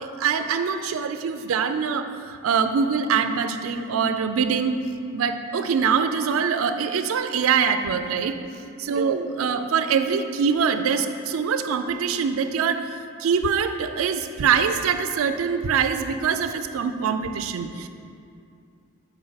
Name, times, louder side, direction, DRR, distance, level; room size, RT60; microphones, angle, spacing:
voice 1, 0.0-4.7 5.1-8.3 8.8-17.9, right 6 dB, 75° right, 9 dB, 0.3 m, -24 dB
6.4 x 4.6 x 3.9 m, 2.5 s
head